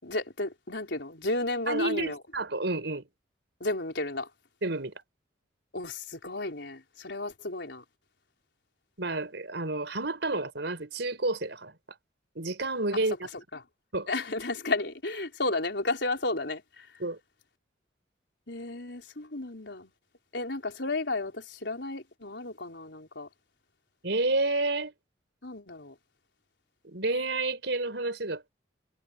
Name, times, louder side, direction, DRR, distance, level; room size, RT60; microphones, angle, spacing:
voice 1, 0.0-2.2 3.6-4.3 5.7-7.8 12.9-13.0 14.1-16.9 18.5-19.9 20.3-23.3 25.4-25.9, left 2 dB, 70° left, 4.3 m, -33 dB
voice 2, 1.7-3.0 4.6-4.9 9.0-11.7 12.4-13.3 13.9-14.1 17.0-17.2 24.0-24.9 26.8-28.5, right 2 dB, 70° right, 4.2 m, -30 dB
head